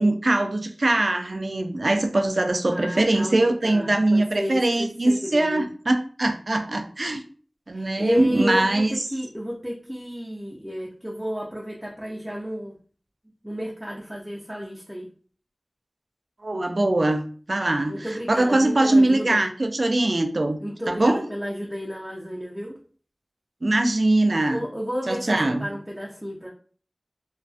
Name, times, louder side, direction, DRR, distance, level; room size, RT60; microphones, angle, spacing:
voice 1, 0.0-7.2 7.7-9.0 16.4-20.6 20.9-21.2 23.6-24.6 25.1-25.7, right 2 dB, 70° right, 5 dB, 0.3 m, -22 dB
voice 2, 2.7-5.7 7.7-12.8 13.4-15.1 17.9-19.4 20.6-22.8 24.3-26.5, equal, 5° right, -3 dB, 0.5 m, -32 dB
2.4 x 2.3 x 2.4 m, 0.43 s
wide cardioid pair, 45°, 0 cm